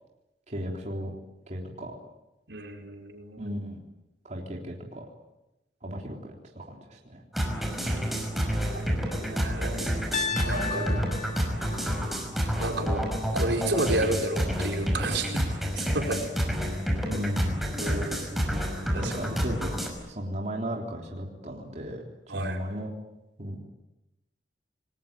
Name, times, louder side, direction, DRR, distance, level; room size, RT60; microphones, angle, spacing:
voice 1, 0.5-1.1 1.5-1.9 3.4-3.8 4.2-5.0 5.8-7.2 10.9-11.2 17.1-17.6 19.0-19.8 20.1-22.9 23.4-23.7, equal, 40° right, 0 dB, 3.7 m, -35 dB
voice 2, 2.5-3.4 8.7-8.8 9.3-9.9 10.4-11.1 11.6-11.9 12.6-13.0 13.3-15.5 15.7-16.2 17.8-18.3 18.9-19.1 22.3-22.6, right 2 dB, 75° right, 3 dB, 4.7 m, -31 dB
sound 1, 7.3-19.9, equal, ahead, 5.4 m, -29 dB
Piano, 10.1-14.2, left 5 dB, 40° left, 1.8 m, -37 dB
29.0 x 20.5 x 9.0 m, 0.96 s
head